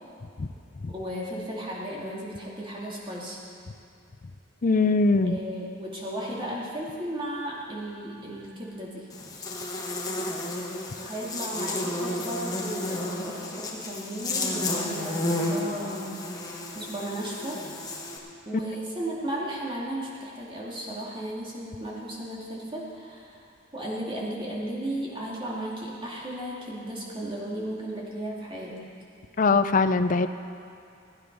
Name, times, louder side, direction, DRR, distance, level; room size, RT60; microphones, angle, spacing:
voice 1, 0.9-3.4 5.2-9.1 11.0-16.1 16.7-17.6 18.4-23.4 23.7-28.9, right 1 dB, 25° right, -4 dB, 2.5 m, -35 dB
voice 2, 4.6-5.4 29.4-30.3, left 3 dB, 40° left, 11 dB, 0.5 m, -22 dB
Buzz, 9.1-18.2, left 2 dB, 20° left, 1.4 m, -32 dB
16.0 x 9.6 x 5.4 m, 2.5 s
head